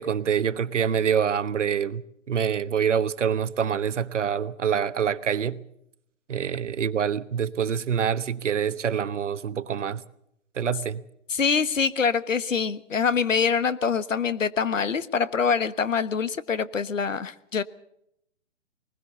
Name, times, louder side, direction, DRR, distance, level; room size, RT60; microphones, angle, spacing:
voice 1, 0.0-5.6 6.3-10.0 10.5-11.0, right 7 dB, 70° right, 1.2 m, -26 dB
voice 2, 11.3-17.6, left 6 dB, 85° left, 1.3 m, -25 dB
21.0 x 20.5 x 6.9 m
hypercardioid pair, 145°, 38 cm